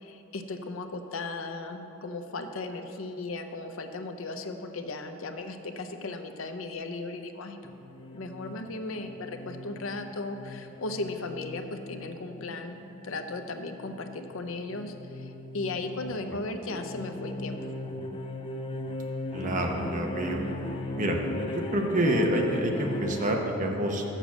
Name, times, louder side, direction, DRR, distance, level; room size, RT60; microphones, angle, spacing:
voice 1, 0.0-7.7 8.1-17.7, left 2 dB, 70° left, 7 dB, 0.6 m, -36 dB
sound 1, 7.6-23.3, left 2 dB, 25° left, 0.5 m, -38 dB
voice 2, 19.3-20.4 21.0-21.2 21.5-24.0, right 1 dB, 40° right, 1 dB, 0.9 m, -27 dB
6.7 x 6.1 x 7.1 m, 2.9 s
head